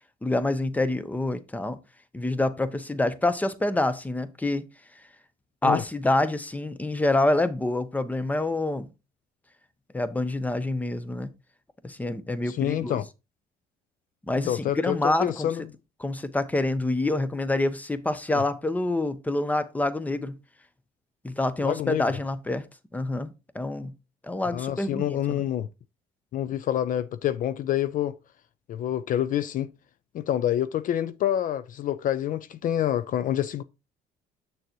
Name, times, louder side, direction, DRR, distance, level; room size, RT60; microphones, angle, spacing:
voice 1, 0.2-1.8 2.1-4.7 5.6-8.9 9.9-11.3 11.8-13.0 14.3-15.5 16.0-20.4 21.2-22.7 22.9-23.9 24.2-25.4, left 2 dB, 10° left, 0.8 m, -27 dB
voice 2, 12.5-13.1 14.5-15.6 18.3-18.4 21.6-22.1 24.5-25.7 26.3-28.2 28.7-29.7 30.1-33.6, left 11 dB, 55° left, 0.4 m, -27 dB
7.9 x 6.5 x 3.0 m
cardioid pair, 110°, 17 cm